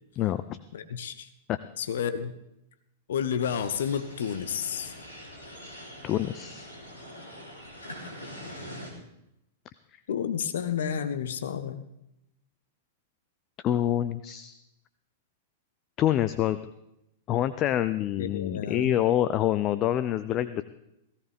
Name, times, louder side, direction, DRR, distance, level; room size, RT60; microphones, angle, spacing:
voice 1, 0.1-0.6 1.5-1.6 6.0-6.7 13.6-14.5 16.0-16.6 17.3-20.6, left 12 dB, 35° left, 14 dB, 0.5 m, -26 dB
voice 2, 0.7-1.3 1.8-2.4 3.1-4.9 10.1-11.8 18.2-19.0, left 8 dB, 65° left, 11 dB, 0.8 m, -31 dB
sound 1, 3.4-8.9, equal, 85° left, 3.7 m, -43 dB
17.5 x 15.5 x 3.6 m, 0.84 s
figure-of-eight pair, 100°, 0 cm